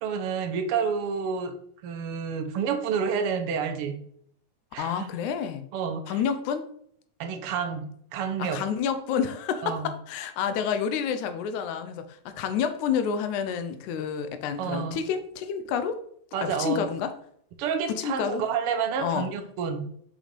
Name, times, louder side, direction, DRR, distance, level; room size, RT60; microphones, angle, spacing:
voice 1, 0.0-4.0 4.7-5.1 5.7-6.2 7.2-8.6 9.6-9.9 14.6-15.0 16.3-16.9 17.6-19.9, right 6 dB, 85° right, 6 dB, 1.2 m, -29 dB
voice 2, 4.8-5.6 6.1-6.7 8.4-16.0 16.4-17.1 17.9-18.4 19.0-19.3, left 7 dB, 80° left, 10 dB, 2.1 m, -29 dB
5.8 x 5.0 x 5.2 m, 0.66 s
omnidirectional pair, 3.5 m